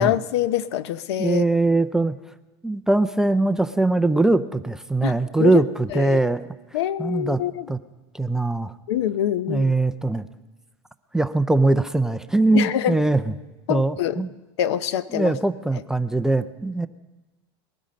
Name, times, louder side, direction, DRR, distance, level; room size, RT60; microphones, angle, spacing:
voice 1, 0.0-1.4 5.0-5.6 5.9-6.2 6.7-7.7 8.9-9.7 12.5-13.0 13.7-14.2 14.6-15.3, left 11 dB, 80° left, 15 dB, 0.7 m, -25 dB
voice 2, 1.2-2.2 2.6-6.4 7.0-7.4 7.7-7.8 8.1-8.7 9.5-10.3 11.1-13.2 13.7-14.3 15.1-16.9, right 2 dB, 5° right, 10 dB, 0.4 m, -21 dB
20.0 x 13.0 x 5.2 m, 1.1 s
supercardioid pair, 140°, 14 cm